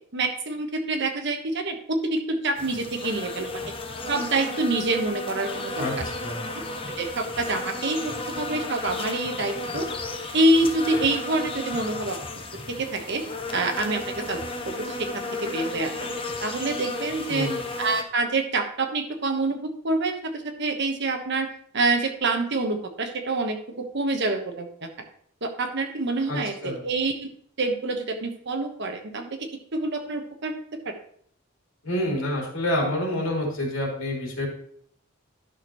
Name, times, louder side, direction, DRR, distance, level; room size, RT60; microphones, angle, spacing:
voice 1, 0.1-3.6 4.1-6.0 6.5-6.6 7.0-9.9 10.3-12.2 12.7-13.2 13.5-16.1 16.4-17.5 17.8-19.6 19.8-21.5 21.7-24.9 25.4-27.3 27.6-30.6 30.8-30.9, right 2 dB, 60° right, 5 dB, 1.2 m, -26 dB
sound 1, 2.6-18.0, left 2 dB, 25° left, 0.8 m, -33 dB
voice 2, 5.8-6.5 17.3-17.6 26.3-26.8 31.8-34.5, left 1 dB, 70° left, -1 dB, 2.8 m, -28 dB
11.5 x 6.3 x 3.0 m, 0.62 s
head